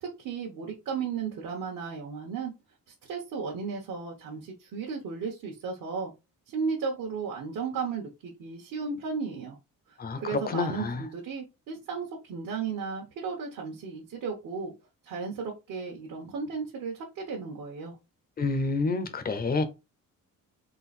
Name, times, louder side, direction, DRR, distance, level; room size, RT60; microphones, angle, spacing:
voice 1, 0.0-2.5 3.1-6.1 6.5-9.6 9.9-14.7 15.1-18.0, right 5 dB, 65° right, 1.2 m, -35 dB
voice 2, 10.0-11.0 18.4-19.6, left 3 dB, 30° left, 0.7 m, -28 dB
3.9 x 2.5 x 4.1 m
cardioid pair, 145°, 33 cm